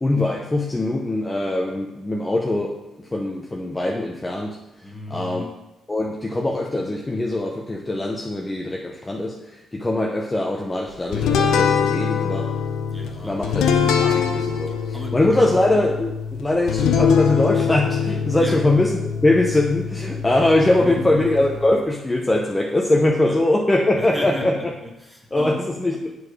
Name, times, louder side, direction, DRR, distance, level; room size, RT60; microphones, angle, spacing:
voice 1, 0.0-4.6 5.1-5.4 5.9-12.5 13.2-13.7 14.0-24.5 25.3-26.1, left 2 dB, 15° left, -1 dB, 0.8 m, -22 dB
voice 2, 4.8-5.6 12.9-14.3 14.7-15.6 18.4-18.7 20.8-21.2 23.2-23.4 23.9-25.6, equal, ahead, 0 dB, 1.5 m, -35 dB
sound 1, 11.1-21.8, left 6 dB, 80° left, 0.7 m, -23 dB
7.5 x 4.8 x 4.8 m, 0.96 s
cardioid pair, 90°, 0 cm